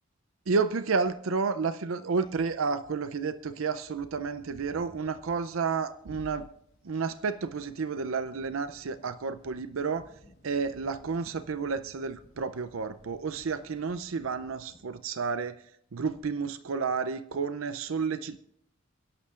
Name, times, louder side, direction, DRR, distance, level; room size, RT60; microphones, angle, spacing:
voice 1, 0.5-6.5 6.8-10.1 10.4-15.6 15.9-18.4, right 5 dB, 70° right, 12 dB, 0.5 m, -31 dB
sound 1, 2.1-14.8, equal, 75° left, 2.5 m, -59 dB
29.0 x 11.0 x 2.5 m, 0.72 s
head